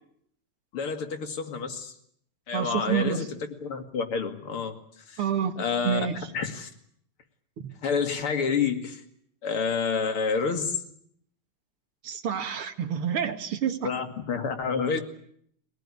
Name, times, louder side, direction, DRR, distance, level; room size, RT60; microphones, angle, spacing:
voice 1, 0.7-1.9 2.5-5.2 5.6-6.1 6.3-6.7 7.8-9.0 9.4-10.8 13.8-15.0, left 5 dB, 85° left, 3.2 m, -29 dB
voice 2, 2.5-3.2 5.2-5.6 5.8-6.1 12.0-13.9, right 8 dB, 90° right, 2.7 m, -28 dB
24.5 x 18.5 x 9.8 m
omnidirectional pair, 2.3 m